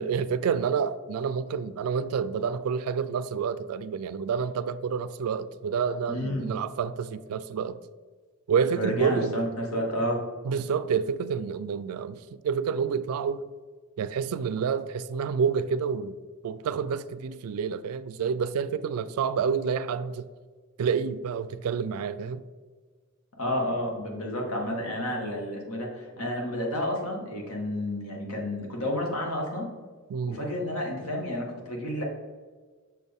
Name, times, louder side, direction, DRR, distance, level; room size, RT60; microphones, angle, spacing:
voice 1, 0.0-7.8 8.5-9.4 10.4-13.4 14.0-16.2 16.4-20.3 20.8-22.4 30.1-30.4, right 6 dB, 70° right, 0.3 m, -28 dB
voice 2, 6.1-6.4 8.7-9.5 9.7-10.2 23.4-29.7 30.3-32.0, left 1 dB, 75° left, 1.5 m, -30 dB
6.3 x 4.3 x 3.4 m
head